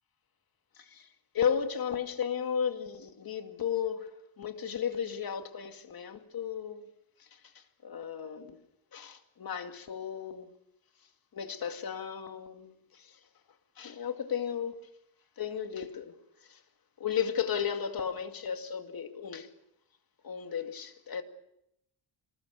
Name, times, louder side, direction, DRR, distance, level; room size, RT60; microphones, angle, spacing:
voice 1, 0.8-1.1 1.3-4.1 4.4-6.9 7.2-8.6 8.9-10.5 11.3-13.2 13.8-14.8 15.4-16.1 16.4-16.6 17.0-19.5 20.2-21.2, left 8 dB, 45° left, 2.4 m, -34 dB
26.5 x 20.0 x 6.9 m
cardioid pair, 135°, 49 cm